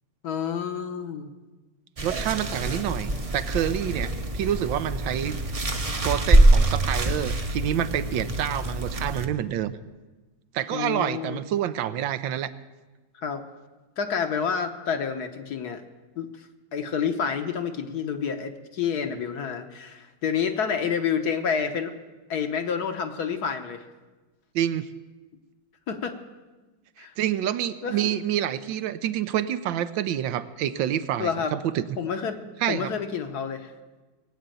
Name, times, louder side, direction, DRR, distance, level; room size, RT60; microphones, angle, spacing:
voice 1, 0.2-1.3 10.7-11.4 13.1-13.4 14.0-15.8 16.2-21.9 22.3-23.8 25.9-26.2 27.0-27.1 27.8-28.1 31.2-31.5 32.0-32.4 32.7-33.7, left 6 dB, 60° left, 7 dB, 1.4 m, -29 dB
sound 1, 2.0-9.3, right 2 dB, 30° right, 0.6 m, -24 dB
voice 2, 2.0-5.6 6.0-9.8 10.5-12.5 24.5-24.9 27.0-31.9 32.6-32.9, right 11 dB, 85° right, 12 dB, 1.4 m, -28 dB
19.5 x 8.1 x 9.1 m, 1.2 s
omnidirectional pair, 2.1 m